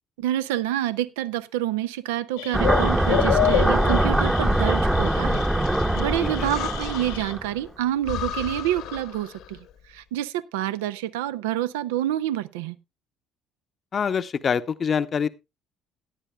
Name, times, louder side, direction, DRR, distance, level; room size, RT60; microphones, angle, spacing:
voice 1, 0.2-5.4 6.0-9.6 9.9-12.8, right 13 dB, 80° right, 0.5 m, -28 dB
sound 1, 2.4-7.3, left 12 dB, 85° left, 1.5 m, -29 dB
sound 2, 2.5-7.5, right 1 dB, 10° right, 0.8 m, -22 dB
Breathing, 5.2-7.3 7.7-7.8 8.0-9.7, left 9 dB, 70° left, 1.1 m, -36 dB
voice 2, 6.2-6.5 13.9-15.3, left 7 dB, 45° left, 0.7 m, -25 dB
17.0 x 10.0 x 2.3 m
hypercardioid pair, 55°, 0 cm